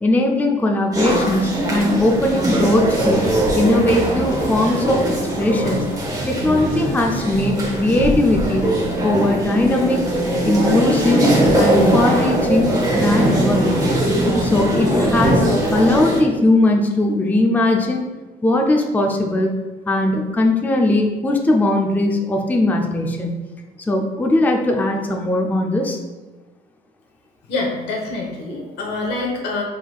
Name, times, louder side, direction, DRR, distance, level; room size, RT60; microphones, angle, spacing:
voice 1, 0.0-3.2 3.5-5.8 6.3-8.7 9.0-10.0 10.5-11.3 11.6-14.0 14.4-18.0 18.4-19.5 19.9-23.3 23.9-26.0, left 1 dB, 10° left, 1 dB, 0.4 m, -19 dB
sound 1, 0.9-16.2, right 1 dB, 20° right, 1.0 m, -20 dB
voice 2, 27.5-29.6, left 3 dB, 85° left, 0 dB, 1.0 m, -25 dB
4.5 x 3.7 x 2.3 m, 1.2 s
cardioid pair, 110°, 17 cm